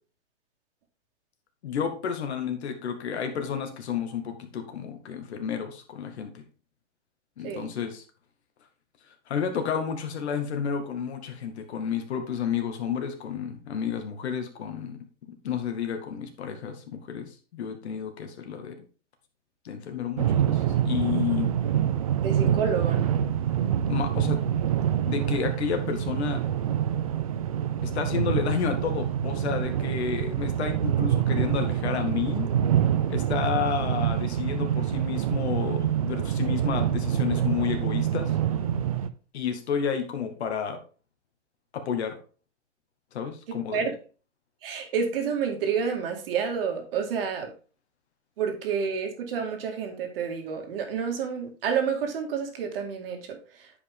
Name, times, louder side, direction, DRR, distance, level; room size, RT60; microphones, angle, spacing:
voice 1, 1.6-6.3 7.4-8.0 9.3-15.0 15.3-18.7 19.6-21.5 23.6-24.4 25.0-26.4 27.8-32.5 33.1-38.4 39.3-40.8 41.7-42.2 43.1-43.9, left 7 dB, 60° left, 6 dB, 2.1 m, -31 dB
sound 1, 20.2-39.1, right 10 dB, 30° right, 0.4 m, -26 dB
voice 2, 22.2-23.2 43.5-43.9 44.6-47.5 48.4-53.7, right 6 dB, 50° right, 4 dB, 2.3 m, -29 dB
9.5 x 5.4 x 3.7 m, 0.37 s
hypercardioid pair, 155°, 37 cm